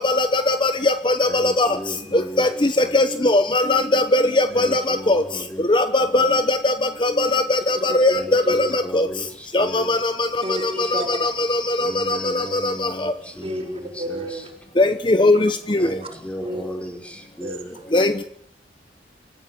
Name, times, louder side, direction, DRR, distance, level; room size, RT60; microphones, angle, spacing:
voice 1, 0.0-1.7 2.4-2.5 2.9-5.2 5.7-6.7 7.0-9.1 9.5-10.1 10.9-12.2 14.8-15.9 17.9-18.2, left 2 dB, 25° left, 1.0 m, -19 dB
voice 2, 1.2-2.5 2.8-3.1 4.5-5.7 6.0-6.4 8.1-10.0 11.8-14.5 15.8-17.8, equal, 5° left, 5.1 m, -36 dB
voice 3, 10.4-11.3 13.4-14.5 16.0-16.1 16.4-16.6 17.4-17.7, equal, 30° right, 4.3 m, -31 dB
26.0 x 14.5 x 9.5 m
head